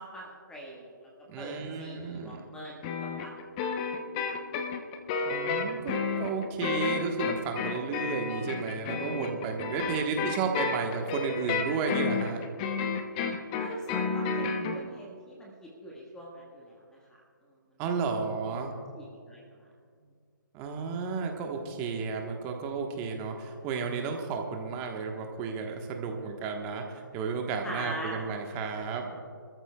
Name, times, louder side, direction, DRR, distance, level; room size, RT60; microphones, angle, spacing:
voice 1, 0.0-1.1 1.4-2.9 3.2-4.4 9.9-10.0 13.6-17.2 18.4-18.5 18.9-19.7 27.6-28.3, right 1 dB, 5° left, -3 dB, 1.5 m, -43 dB
voice 2, 1.3-2.4 5.2-12.4 17.8-18.7 20.5-26.8 27.1-29.1, right 5 dB, 20° right, 3 dB, 1.3 m, -33 dB
sound 1, 2.8-14.8, left 5 dB, 20° left, 0.8 m, -31 dB
27.0 x 13.5 x 2.3 m, 2.1 s
hypercardioid pair, 150°, 11 cm